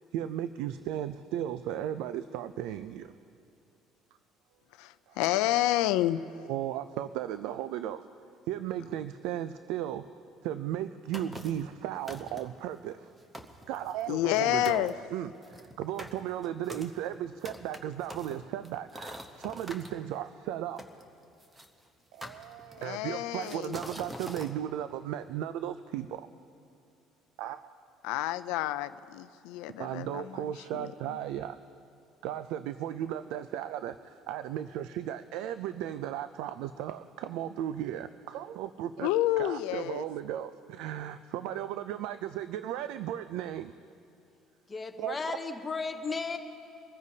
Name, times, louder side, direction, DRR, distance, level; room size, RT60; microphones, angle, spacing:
voice 1, 0.1-3.1 5.1-5.2 6.5-8.0 8.5-10.0 10.4-13.1 13.7-20.8 22.1-26.3 27.4-27.6 29.8-31.6 32.2-39.1 39.4-43.7 45.0-45.2 45.4-45.5 45.9-46.1, right 11 dB, 75° right, 12 dB, 0.4 m, -35 dB
voice 2, 4.8-6.2 14.1-14.9 22.8-23.8 28.0-30.5 31.1-31.2 39.0-40.0, left 15 dB, 85° left, 13 dB, 0.4 m, -29 dB
sound 1, 11.1-11.7 12.1-12.6 13.1-13.2 13.3-14.4 14.6-14.9 15.4-19.9 20.8-21.7 22.2-22.9 23.4-24.5, equal, 10° right, 0.9 m, -44 dB
voice 3, 44.7-46.4, left 4 dB, 15° left, 4 dB, 0.9 m, -34 dB
23.0 x 14.5 x 2.8 m, 2.5 s
cardioid pair, 150°, 0 cm